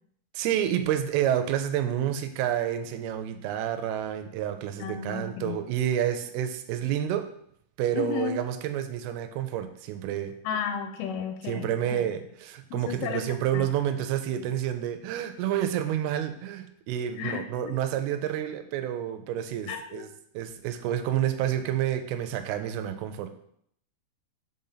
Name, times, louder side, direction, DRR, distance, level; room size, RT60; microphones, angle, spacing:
voice 1, 0.3-7.3 7.8-10.3 11.5-20.1 20.3-23.3, right 10 dB, 90° right, 9 dB, 2.6 m, -29 dB
voice 2, 4.8-5.6 7.9-8.3 10.4-12.0 12.7-13.2 13.5-13.7 17.2-17.7 19.7-20.0, left 8 dB, 85° left, 5 dB, 2.5 m, -33 dB
5.4 x 5.1 x 5.7 m, 0.68 s
omnidirectional pair, 4.4 m